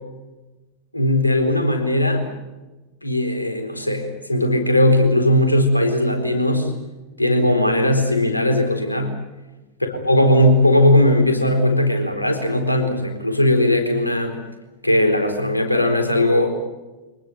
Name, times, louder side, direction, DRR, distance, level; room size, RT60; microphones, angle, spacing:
voice 1, 0.9-2.3 3.0-6.7 7.2-9.1 9.8-14.4 14.8-16.5, left 1 dB, 85° left, 5 dB, 4.1 m, -18 dB
25.0 x 19.5 x 9.2 m, 1.1 s
figure-of-eight pair, 90°, 0 cm